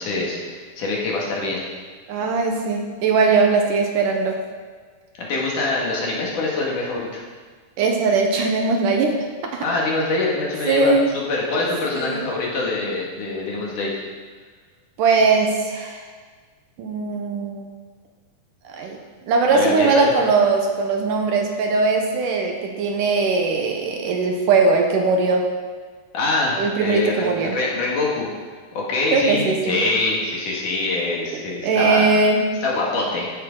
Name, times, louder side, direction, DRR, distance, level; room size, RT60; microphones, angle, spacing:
voice 1, 0.0-1.6 5.1-7.2 9.6-14.0 19.5-20.1 26.1-28.3 28.7-32.1 32.6-33.3, left 2 dB, 65° left, -3 dB, 3.4 m, -24 dB
voice 2, 2.1-4.4 7.8-9.2 9.5-9.7 10.7-11.1 11.9-12.3 15.0-16.0 16.8-17.7 18.7-19.0 19.3-25.5 26.6-27.6 29.1-29.8 31.6-32.5, right 4 dB, 70° right, 2 dB, 2.4 m, -20 dB
14.5 x 10.5 x 3.9 m, 1.5 s
omnidirectional pair, 4.2 m